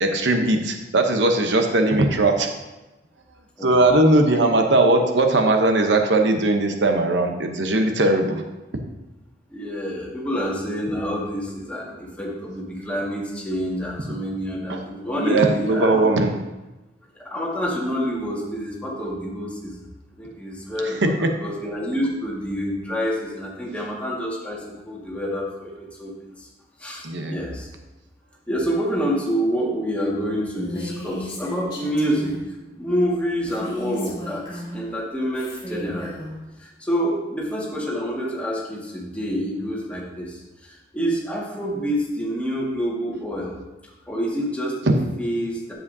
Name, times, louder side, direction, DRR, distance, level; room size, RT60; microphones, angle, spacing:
voice 1, 0.0-2.5 3.6-8.4 14.7-14.8 15.2-16.3 21.0-21.3 27.0-27.3, right 2 dB, 90° right, 4 dB, 0.9 m, -19 dB
voice 2, 9.5-16.1 17.2-19.8 20.2-26.5 26.8-27.7 28.5-32.3 32.7-36.2 36.6-43.6 44.1-45.7, equal, 10° left, -5 dB, 1.8 m, -27 dB
Female speech woman speaking, 30.5-32.5 33.5-34.9 35.3-36.3, left 1 dB, 25° left, 2.8 m, -34 dB
9.7 x 7.7 x 2.7 m, 1.0 s
head